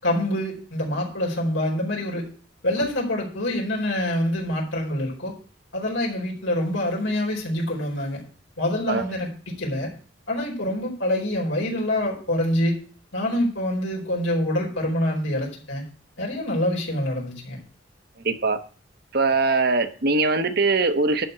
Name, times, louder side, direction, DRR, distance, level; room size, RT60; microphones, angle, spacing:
voice 1, 0.0-2.2 2.6-5.3 5.7-8.2 8.6-9.9 10.3-12.8 13.1-15.8 16.2-17.6, left 1 dB, 90° left, -2 dB, 4.6 m, -26 dB
voice 2, 18.2-18.6 19.1-21.3, right 3 dB, 55° right, 8 dB, 1.0 m, -21 dB
11.5 x 4.4 x 7.9 m, 0.40 s
head